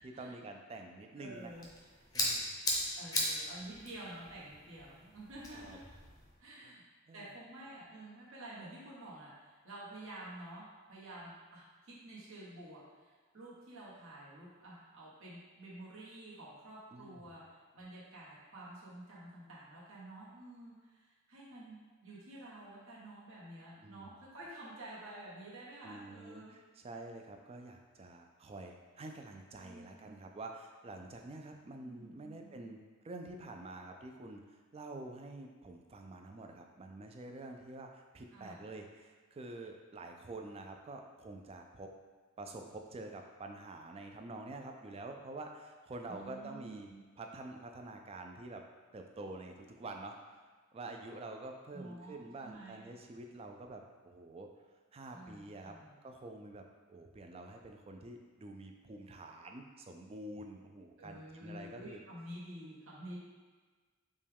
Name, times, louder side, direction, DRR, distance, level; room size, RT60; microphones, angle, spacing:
voice 1, 0.0-1.5 2.1-2.6 5.5-5.8 6.6-6.8 7.1-7.3 16.9-17.2 23.8-24.1 25.8-32.8 33.0-41.9 42.4-46.9 47.2-48.6 48.9-50.4 50.7-54.5 54.9-55.8 56.0-62.0, right 2 dB, 30° right, 3 dB, 0.3 m, -48 dB
voice 2, 1.2-1.7 3.0-5.8 6.4-6.8 7.1-13.1 13.3-17.4 17.7-26.6 29.5-30.2 31.8-32.6 38.3-38.6 46.1-47.0 51.7-52.8 55.1-55.9 61.0-63.2, right 1 dB, 65° right, -7 dB, 1.2 m, -50 dB
sound 1, 1.3-6.3, left 1 dB, 15° left, 0.6 m, -38 dB
5.3 x 2.3 x 3.4 m, 1.4 s
head